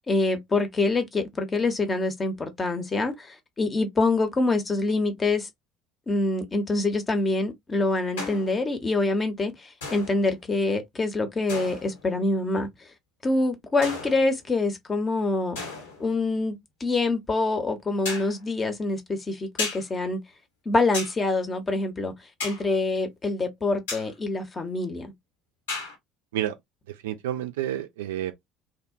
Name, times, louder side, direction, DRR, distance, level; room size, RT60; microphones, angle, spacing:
voice 1, 0.1-5.5 6.1-12.9 13.2-15.6 16.0-20.2 20.7-22.1 22.4-25.1, left 2 dB, 25° left, 0.7 m, -25 dB
sound 1, 8.2-8.7 9.8-10.4 11.5-12.1 13.8-14.5 15.6-16.1 18.0-18.4 19.6-19.9 20.9-21.2 22.4-22.7 23.9-24.1 25.7-26.0, left 3 dB, 70° left, 1.0 m, -34 dB
voice 2, 26.9-28.3, right 12 dB, 70° right, 0.3 m, -30 dB
2.7 x 2.1 x 2.4 m
figure-of-eight pair, 60°, 0 cm